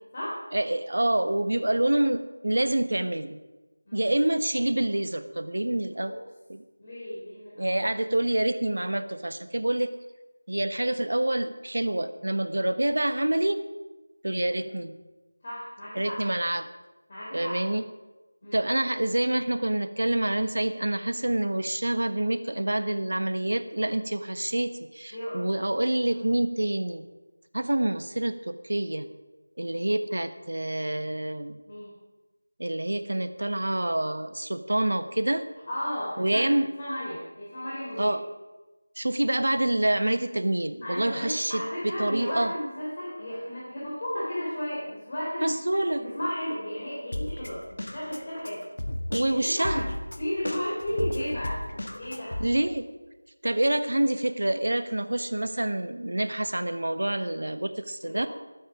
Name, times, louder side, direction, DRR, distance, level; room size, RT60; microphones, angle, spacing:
voice 1, 0.5-3.4 3.9-6.1 6.5-6.6 7.6-9.9 10.5-13.6 14.2-14.9 15.9-16.7 17.3-17.8 18.5-27.0 27.5-29.1 29.6-31.6 32.6-35.5 36.2-36.7 38.0-38.3 39.0-42.5 45.4-46.0 49.1-49.8 52.4-52.9 53.4-58.3, right 1 dB, 75° right, 10 dB, 1.2 m, -27 dB
voice 2, 6.8-7.7 15.4-16.2 17.1-17.6 18.4-18.7 25.1-25.4 26.1-26.2 31.7-31.9 35.7-38.1 40.8-48.6 49.3-49.9 50.2-51.6 51.9-52.4 58.0-58.3, equal, 30° left, -8 dB, 3.7 m, -34 dB
Drum kit, 47.1-52.5, left 1 dB, 70° left, 1.6 m, -34 dB
21.5 x 8.8 x 5.1 m, 1.2 s
figure-of-eight pair, 175°, 0 cm